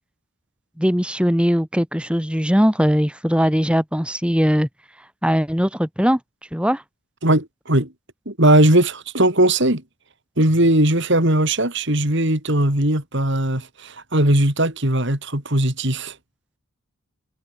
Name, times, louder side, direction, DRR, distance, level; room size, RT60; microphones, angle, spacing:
voice 1, 0.8-4.7 5.2-6.2 6.5-6.8, equal, 5° right, 3.6 m, -20 dB
voice 2, 7.2-7.9 8.3-9.8 10.4-16.1, right 1 dB, 55° right, 4.5 m, -18 dB
head